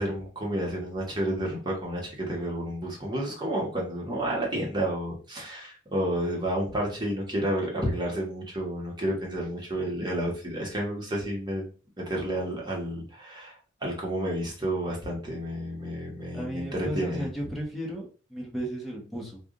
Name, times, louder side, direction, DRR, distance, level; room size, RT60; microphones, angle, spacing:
voice 1, 0.0-11.7 12.0-17.3, right 1 dB, 25° right, -2 dB, 1.3 m, -31 dB
voice 2, 16.3-19.4, right 1 dB, ahead, -4 dB, 1.1 m, -34 dB
3.5 x 2.4 x 3.7 m, 0.37 s
head